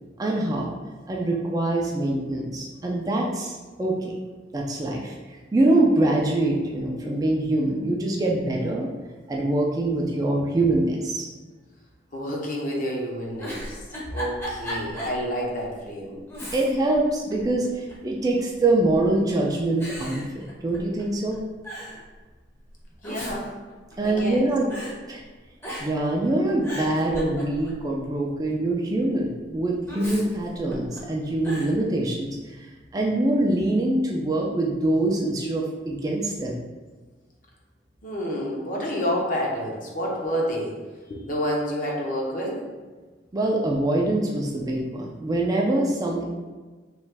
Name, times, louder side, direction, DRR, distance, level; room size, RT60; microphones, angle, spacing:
voice 1, 0.2-0.7 1.1-4.2 4.5-8.9 9.3-11.3 16.5-21.4 24.0-24.7 25.1-25.2 25.8-36.6 43.3-46.2, right 2 dB, 20° right, -1 dB, 0.3 m, -24 dB
voice 2, 12.1-13.8 14.1-16.2 23.0-23.5 24.0-24.4 38.0-40.8 41.1-42.6, equal, 45° left, -2 dB, 0.7 m, -29 dB
Giggle, 13.4-15.2 15.6-15.7 16.3-17.0 17.3-18.1 18.9-19.3 19.8-21.0 21.3-21.4 21.6-22.0 22.8-24.4 24.7-24.9 25.6-26.1 26.4-27.8 29.9-31.0 31.4-31.7, equal, 15° left, 0.6 m, -36 dB
3.1 x 2.4 x 3.3 m, 1.3 s
head